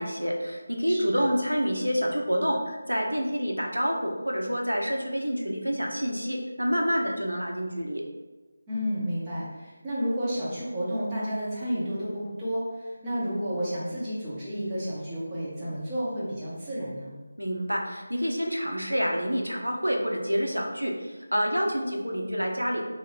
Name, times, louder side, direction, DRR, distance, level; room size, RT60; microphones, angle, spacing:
voice 1, 0.0-8.0 17.4-22.8, equal, 90° right, 1 dB, 0.7 m, -28 dB
voice 2, 0.9-1.3 8.7-17.1, equal, 15° right, -11 dB, 1.2 m, -31 dB
3.2 x 2.6 x 4.3 m, 1.2 s
figure-of-eight pair, 160°, 0 cm